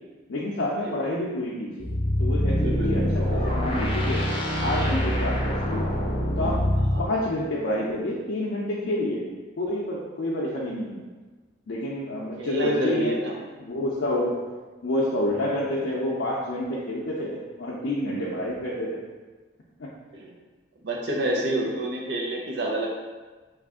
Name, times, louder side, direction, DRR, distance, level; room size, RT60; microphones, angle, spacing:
voice 1, 0.3-1.9 2.2-4.3 4.6-6.0 6.4-9.3 9.6-11.0 11.7-13.2 13.6-14.5 14.8-19.0 19.8-19.9, left 1 dB, 90° left, -5 dB, 0.5 m, -28 dB
sound 1, 1.8-7.1, equal, 30° left, 0.5 m, -25 dB
voice 2, 2.5-3.1 6.8-7.0 12.4-13.3 14.1-14.3 20.1-20.3 20.8-22.9, right 1 dB, 65° right, -2 dB, 0.7 m, -28 dB
3.2 x 2.4 x 3.6 m, 1.3 s
head